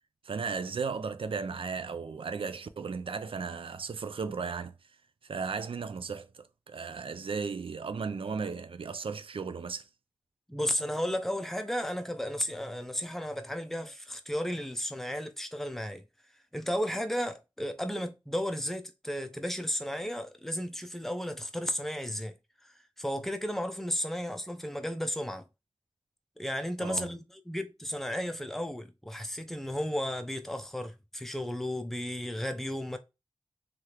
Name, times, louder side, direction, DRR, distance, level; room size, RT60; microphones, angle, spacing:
voice 1, 0.2-4.7 5.3-9.9 26.8-27.1, right 5 dB, 70° right, 0.4 m, -35 dB
voice 2, 10.5-16.0 16.5-22.3 22.6-25.4 26.4-33.0, equal, 5° left, 0.5 m, -34 dB
3.2 x 2.4 x 2.9 m
wide cardioid pair, 55°, 10 cm